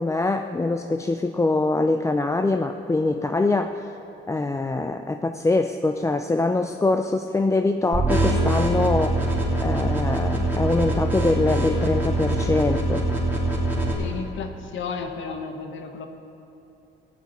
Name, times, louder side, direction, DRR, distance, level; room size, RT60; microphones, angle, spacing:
voice 1, 0.0-3.9 4.3-13.1, left 2 dB, 15° left, 7 dB, 0.4 m, -24 dB
sound 1, 7.9-13.9, right 1 dB, 10° right, 3.3 m, -23 dB
voice 2, 14.0-16.1, left 5 dB, 75° left, 5 dB, 1.3 m, -33 dB
16.0 x 6.0 x 9.4 m, 3.0 s
cardioid pair, 90°, 20 cm